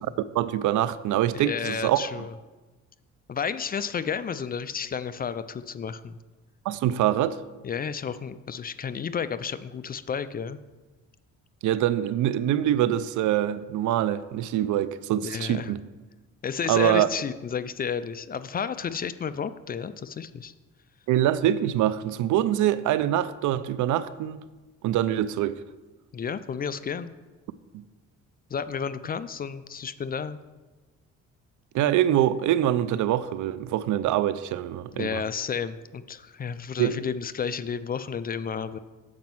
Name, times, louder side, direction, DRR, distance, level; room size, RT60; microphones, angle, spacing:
voice 1, 0.3-2.1 6.7-7.4 11.6-15.8 16.7-17.1 21.1-24.4 24.8-25.6 27.7-27.9 31.7-35.2 36.8-37.0, right 12 dB, 80° right, 0.5 m, -24 dB
voice 2, 1.3-2.3 3.3-6.2 7.6-10.6 15.2-15.7 16.4-20.5 26.1-27.1 28.5-30.4 34.9-38.8, left 6 dB, 30° left, 0.4 m, -32 dB
7.4 x 5.1 x 6.0 m
cardioid pair, 90°, 30 cm